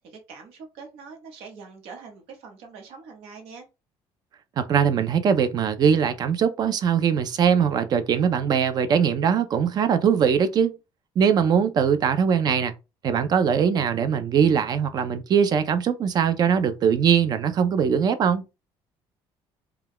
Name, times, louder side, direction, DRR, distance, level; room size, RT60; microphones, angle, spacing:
voice 1, 0.1-3.7, right 5 dB, 75° right, 1.0 m, -43 dB
voice 2, 4.6-10.7 11.2-12.7 13.0-18.4, right 7 dB, 40° right, 0.4 m, -21 dB
2.3 x 2.2 x 3.5 m
cardioid pair, 125°, 10 cm